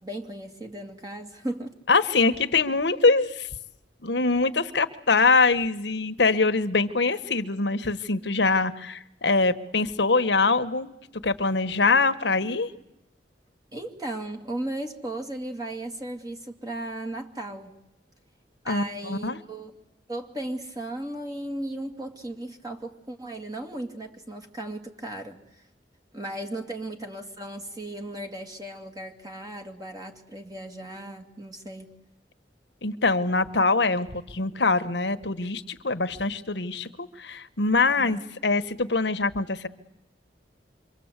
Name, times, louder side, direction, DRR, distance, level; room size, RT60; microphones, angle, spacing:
voice 1, 0.0-1.7 13.7-17.7 18.7-19.7 20.1-25.4 26.1-31.9 38.0-38.2, right 1 dB, 20° right, 4 dB, 2.4 m, -36 dB
voice 2, 1.9-3.5 4.0-10.9 11.2-12.7 18.6-19.4 32.8-39.7, left 3 dB, 75° left, 10 dB, 1.4 m, -23 dB
27.5 x 24.5 x 8.3 m, 0.85 s
head